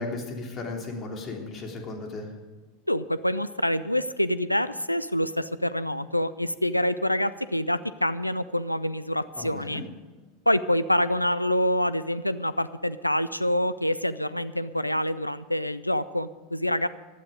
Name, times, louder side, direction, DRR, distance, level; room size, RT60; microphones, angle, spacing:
voice 1, 0.0-2.3 9.4-9.8, left 3 dB, 30° left, 2 dB, 3.3 m, -35 dB
voice 2, 2.9-9.8 10.5-16.9, left 1 dB, 90° left, 16 dB, 0.5 m, -26 dB
15.0 x 12.0 x 5.1 m, 1.3 s
figure-of-eight pair, 80°, 0 cm